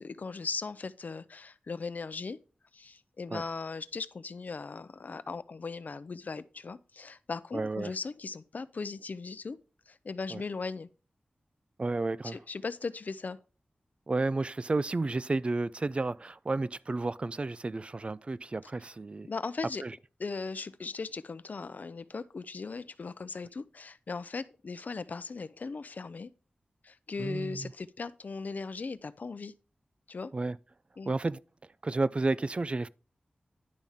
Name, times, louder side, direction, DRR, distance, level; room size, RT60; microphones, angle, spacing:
voice 1, 0.0-2.4 2.7-9.6 9.9-10.9 12.2-13.4 19.3-19.8 20.2-26.3 26.8-29.5 30.1-30.3 31.0-31.1, left 4 dB, 65° left, 0.5 m, -38 dB
voice 2, 7.5-7.9 10.3-10.4 11.8-12.4 14.1-19.3 19.8-20.0 27.2-27.7 30.3-30.6 31.1-31.4 31.8-32.9, right 3 dB, 40° right, 0.3 m, -31 dB
10.5 x 3.5 x 5.6 m
cardioid pair, 55°, 3 cm